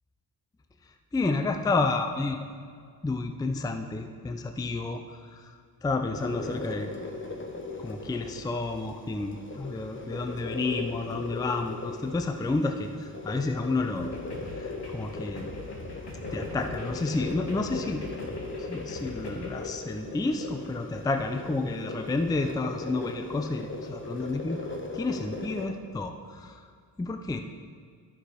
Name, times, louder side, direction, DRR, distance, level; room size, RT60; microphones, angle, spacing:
voice 1, 1.1-2.6 3.0-6.9 7.8-14.2 14.6-15.5 16.3-18.1 18.7-24.6 24.9-26.7 27.0-27.4, left 3 dB, 10° left, 6 dB, 0.4 m, -30 dB
sound 1, 6.1-25.7, left 3 dB, 30° left, 1.1 m, -39 dB
sound 2, 14.0-19.6, left 1 dB, 75° left, 2.0 m, -43 dB
12.5 x 6.3 x 5.0 m, 2.2 s
wide cardioid pair, 130°, 41 cm